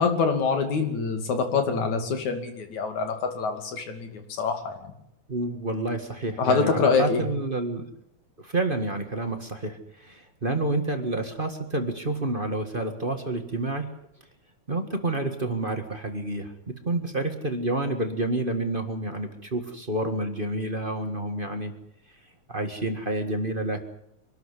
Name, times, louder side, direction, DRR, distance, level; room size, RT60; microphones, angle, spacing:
voice 1, 0.0-4.8 6.4-7.3, left 5 dB, 75° left, 6 dB, 4.0 m, -25 dB
voice 2, 5.3-7.8 8.4-13.9 14.7-21.7 22.5-23.8, right 2 dB, 25° right, 6 dB, 1.4 m, -29 dB
24.5 x 13.0 x 9.9 m, 0.79 s
omnidirectional pair, 3.3 m